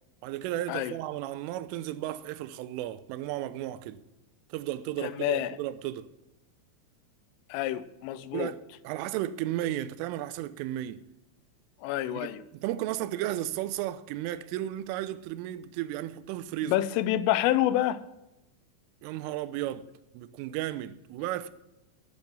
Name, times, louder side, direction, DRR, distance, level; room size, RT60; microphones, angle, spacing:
voice 1, 0.2-4.0 4.5-6.1 8.3-8.6 8.8-11.0 12.1-16.7 19.0-19.9 20.1-21.5, right 13 dB, 90° right, 3.2 m, -34 dB
voice 2, 5.0-5.6 7.5-8.5 11.8-12.4 16.7-18.0, left 13 dB, 90° left, 3.2 m, -28 dB
10.5 x 10.5 x 6.0 m
omnidirectional pair, 5.6 m